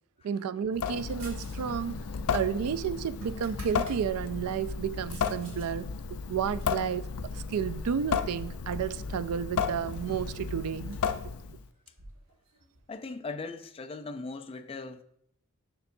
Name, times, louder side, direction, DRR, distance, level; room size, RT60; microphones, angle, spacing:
voice 1, 0.2-2.0 2.3-5.8 6.3-11.0, right 8 dB, 85° right, 0.3 m, -32 dB
Water tap faucet / Sink (filling or washing) / Drip, 0.7-11.7, left 6 dB, 85° left, 0.4 m, -34 dB
sound 1, 1.2-1.7 1.9-4.0 4.5-5.7 6.1-7.8 8.4-9.0 9.3-9.4 9.7-12.8, right 2 dB, 60° right, 2.0 m, -54 dB
voice 2, 12.9-15.0, left 3 dB, 25° left, 0.4 m, -39 dB
6.9 x 6.7 x 2.6 m
head